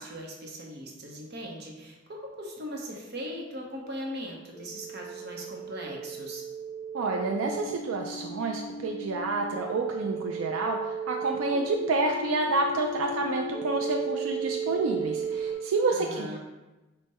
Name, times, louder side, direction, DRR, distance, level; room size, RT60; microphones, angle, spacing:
voice 1, 0.0-6.4 15.9-16.4, equal, 50° right, 0 dB, 0.8 m, -39 dB
sound 1, 2.3-15.5, right 4 dB, 5° right, 0.6 m, -36 dB
voice 2, 6.9-16.4, right 3 dB, 80° right, 2 dB, 0.4 m, -29 dB
5.2 x 2.2 x 4.1 m, 1.1 s
head